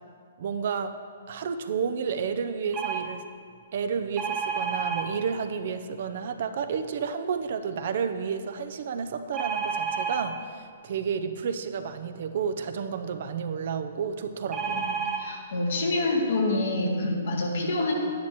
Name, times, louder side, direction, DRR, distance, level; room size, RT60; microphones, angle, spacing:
voice 1, 0.4-0.9 1.3-3.2 3.7-14.9, right 6 dB, 60° right, 8 dB, 0.6 m, -31 dB
sound 1, 2.7-3.0 4.2-5.0 9.3-10.2 14.5-15.2 16.0-16.1 16.4-16.6, right 6 dB, 15° right, 1.3 m, -30 dB
voice 2, 15.2-17.9, left 2 dB, 65° left, -1 dB, 2.0 m, -27 dB
11.0 x 10.0 x 3.1 m, 2.1 s
hypercardioid pair, 125°, 0 cm